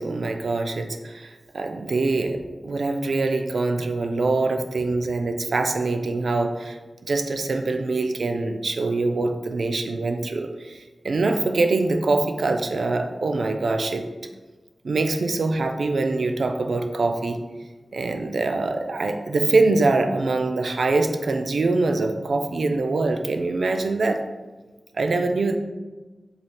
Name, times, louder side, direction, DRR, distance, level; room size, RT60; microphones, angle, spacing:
voice 1, 0.0-6.8 7.0-14.0 14.8-17.4 17.9-24.2 24.9-25.6, right 3 dB, 80° right, 6 dB, 0.3 m, -24 dB
3.2 x 2.4 x 4.2 m, 1.2 s
wide cardioid pair, 70°, 0 cm